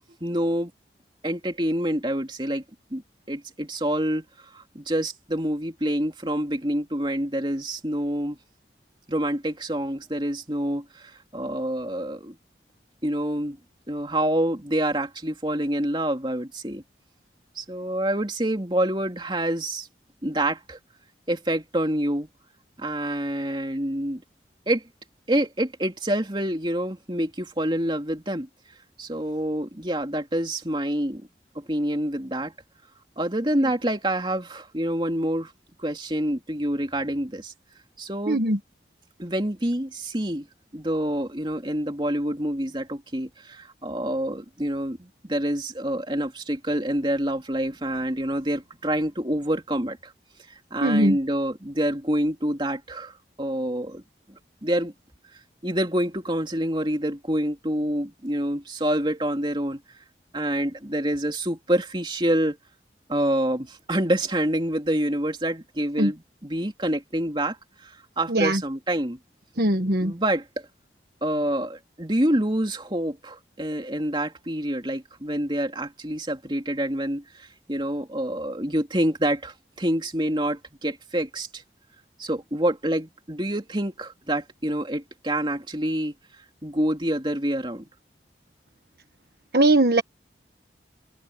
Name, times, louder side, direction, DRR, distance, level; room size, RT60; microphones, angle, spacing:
voice 1, 0.2-0.7 1.2-2.6 2.9-3.0 3.3-4.2 4.5-8.4 9.1-12.4 13.0-13.6 13.9-16.8 17.5-19.9 20.2-20.8 21.3-22.3 22.8-24.2 24.7-24.8 25.3-28.5 29.0-31.2 31.5-32.5 33.2-35.5 35.8-37.5 38.0-38.4 39.2-40.5 40.7-50.1 50.7-54.0 54.3-54.9 55.6-59.8 60.3-62.6 63.1-67.6 67.8-69.2 70.0-70.4 71.2-81.6 82.2-86.1 86.6-87.9, right 1 dB, 25° right, 3.1 m, -27 dB
voice 2, 38.3-38.6 50.8-51.2 66.0-66.1 68.3-68.6 69.6-70.1 89.5-90.0, right 1 dB, 60° right, 1.5 m, -20 dB
open air
head